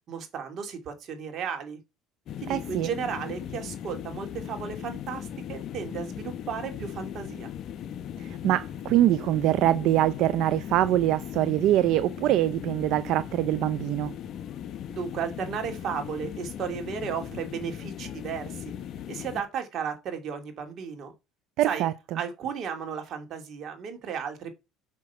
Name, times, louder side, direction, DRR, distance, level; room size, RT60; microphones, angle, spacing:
voice 1, 0.1-1.8 2.4-7.5 14.9-18.7 19.1-21.1 21.7-21.9 22.1-24.5, right 7 dB, 50° right, 2.5 m, -34 dB
sound 1, 2.3-19.4, left 10 dB, 50° left, 0.8 m, -38 dB
voice 2, 2.5-2.9 8.2-14.1 21.6-22.2, right 13 dB, 65° right, 0.4 m, -24 dB
6.0 x 5.8 x 5.7 m
supercardioid pair, 110°, 0 cm